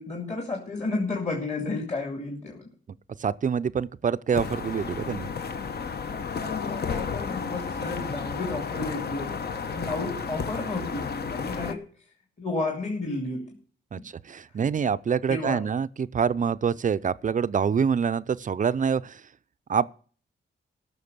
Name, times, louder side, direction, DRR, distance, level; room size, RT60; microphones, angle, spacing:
voice 1, 0.0-2.7 6.1-11.8 12.4-13.5 15.3-15.6, left 3 dB, 35° left, 2.4 m, -32 dB
voice 2, 3.2-5.3 13.9-19.2 19.7-19.9, right 6 dB, 40° right, 0.5 m, -26 dB
sound 1, 4.3-11.7, left 5 dB, 55° left, 1.1 m, -32 dB
15.0 x 6.5 x 6.8 m
wide cardioid pair, 110°, 20 cm